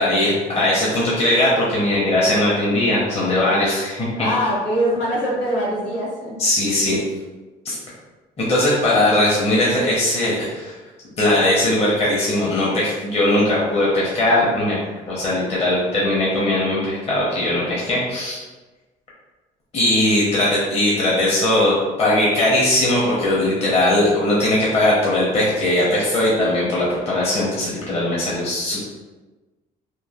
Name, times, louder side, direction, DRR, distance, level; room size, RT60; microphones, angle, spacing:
voice 1, 0.0-4.1 6.4-7.0 7.6-7.8 8.5-10.8 11.2-14.8 15.1-18.4 19.7-28.8, left 1 dB, 40° left, -6 dB, 0.8 m, -19 dB
voice 2, 4.2-6.4, equal, 85° left, -6 dB, 1.2 m, -23 dB
3.1 x 2.4 x 2.4 m, 1.2 s
cardioid pair, 110°, 17 cm